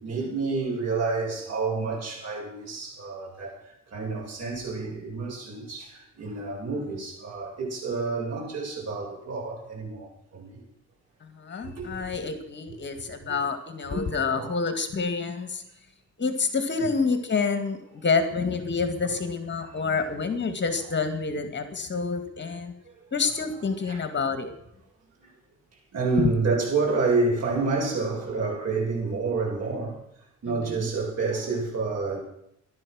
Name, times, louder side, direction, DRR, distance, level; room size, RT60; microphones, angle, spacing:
voice 1, 0.0-3.5 3.9-10.6 11.8-12.1 13.9-14.0 14.3-14.5 19.6-19.7 23.9-24.0 25.9-30.0 30.4-32.2, right 4 dB, 55° right, -2 dB, 7.4 m, -29 dB
voice 2, 11.2-15.6 16.2-22.7 23.1-24.5 26.2-26.3 30.6-30.9, left 4 dB, 35° left, 8 dB, 2.2 m, -28 dB
14.5 x 12.0 x 6.5 m, 0.77 s
cardioid pair, 90°, 30 cm